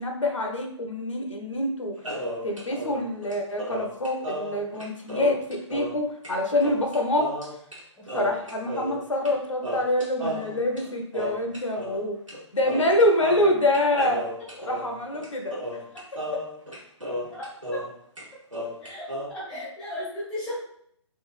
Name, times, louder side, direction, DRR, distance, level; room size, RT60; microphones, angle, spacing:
voice 1, 0.0-1.9 2.4-7.3 8.1-12.2 12.5-14.2 14.6-15.6 16.3-16.4, left 1 dB, 80° left, 3 dB, 0.6 m, -25 dB
sound 1, 2.0-6.0 6.2-6.3 6.6-7.8 8.1-9.3 9.6-12.0 12.3-12.4 12.6-17.9 18.2-19.3, equal, 90° right, 1.2 m, -34 dB
voice 2, 8.0-8.3 17.3-17.4 17.7-17.8 18.8-20.6, left 1 dB, 5° left, -7 dB, 0.5 m, -35 dB
3.0 x 2.3 x 2.4 m, 0.66 s
figure-of-eight pair, 135°, 16 cm